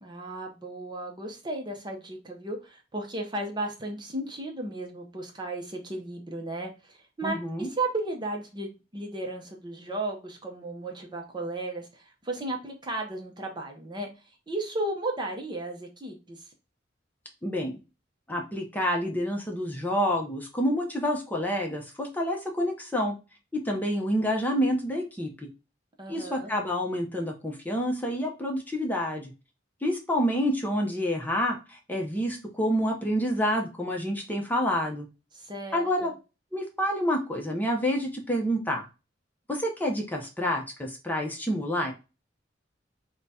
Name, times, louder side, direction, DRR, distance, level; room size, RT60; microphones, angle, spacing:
voice 1, 0.0-14.1 14.5-16.5 26.0-26.5 35.3-36.2, right 2 dB, 25° right, 2 dB, 0.7 m, -35 dB
voice 2, 7.2-7.7 17.4-17.8 18.3-23.1 23.5-25.3 26.1-29.3 29.8-35.1 35.7-36.1 36.5-38.9 39.5-41.9, equal, 10° left, 1 dB, 0.7 m, -28 dB
3.9 x 2.3 x 4.0 m, 0.29 s
head